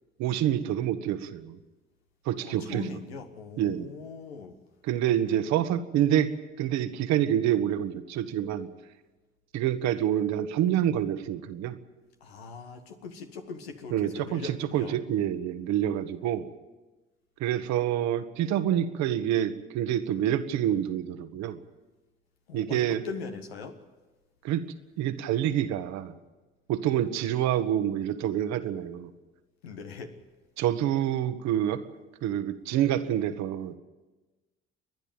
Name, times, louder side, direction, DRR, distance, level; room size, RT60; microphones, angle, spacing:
voice 1, 0.2-1.6 2.2-2.8 3.6-3.9 4.9-6.3 6.6-8.7 9.5-11.8 13.9-16.5 17.4-21.6 22.5-23.0 24.4-24.6 25.0-26.1 26.7-29.1 30.6-31.8 32.2-33.8, right 11 dB, 65° right, 10 dB, 1.3 m, -27 dB
voice 2, 2.4-4.6 12.2-15.0 22.5-23.8 29.6-30.1, left 4 dB, 85° left, 6 dB, 1.6 m, -41 dB
29.5 x 11.0 x 9.0 m, 1.2 s
hypercardioid pair, 55°, 30 cm